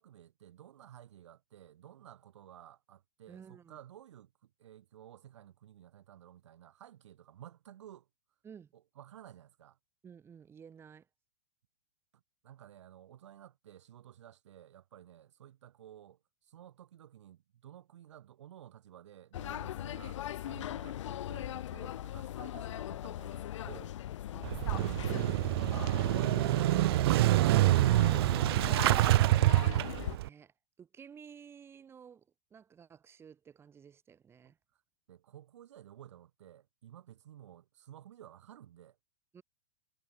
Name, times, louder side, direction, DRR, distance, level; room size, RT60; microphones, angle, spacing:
voice 1, 0.0-8.1 8.7-9.8 12.4-24.0 34.4-34.5 35.1-39.0, right 11 dB, 75° right, 1.9 m, -54 dB
voice 2, 3.3-3.8 8.4-8.7 10.0-11.1 24.3-25.0 30.1-32.2 32.5-34.6 39.3-39.4, right 7 dB, 15° right, 3.4 m, -54 dB
sound 1, 19.3-30.2, left 12 dB, 85° left, 0.4 m, -40 dB
Motorcycle / Engine starting, 24.4-30.3, right 17 dB, 55° right, 0.5 m, -26 dB
hypercardioid pair, 145°, 15 cm